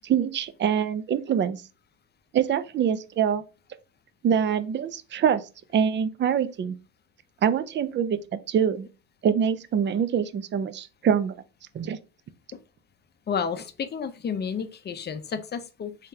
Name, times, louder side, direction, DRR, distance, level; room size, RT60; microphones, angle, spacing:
voice 1, 0.0-1.6 2.3-3.4 4.2-5.4 5.7-6.7 7.4-8.9 9.2-11.4 11.7-12.0, right 8 dB, 30° right, 0.4 m, -24 dB
voice 2, 13.3-16.1, left 6 dB, 25° left, 0.6 m, -31 dB
3.7 x 3.5 x 2.7 m
supercardioid pair, 80°, 40 cm